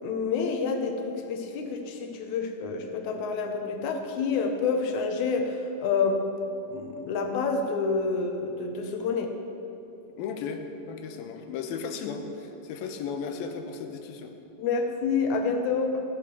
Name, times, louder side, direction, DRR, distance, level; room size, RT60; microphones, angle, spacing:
voice 1, 0.0-6.2 6.7-9.3 14.6-16.0, left 4 dB, 70° left, 4 dB, 1.9 m, -28 dB
voice 2, 10.2-14.3, left 5 dB, 85° left, 6 dB, 2.6 m, -35 dB
15.0 x 6.9 x 6.9 m, 3.0 s
omnidirectional pair, 4.2 m